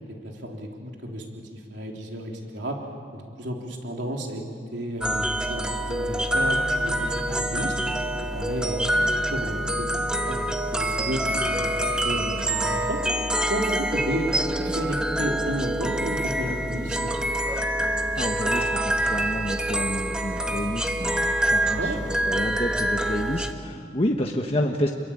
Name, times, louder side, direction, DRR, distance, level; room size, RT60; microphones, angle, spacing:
voice 1, 0.1-2.8 3.1-4.5 4.7-7.7 8.2-13.0 13.5-14.3 14.6-17.2 21.8-22.0, right 1 dB, 75° right, 0 dB, 3.5 m, -32 dB
sound 1, 5.0-23.5, right 1 dB, 5° right, 1.2 m, -26 dB
voice 2, 18.2-24.9, left 1 dB, 35° left, 1 dB, 1.4 m, -29 dB
30.0 x 22.5 x 8.8 m, 2.2 s
head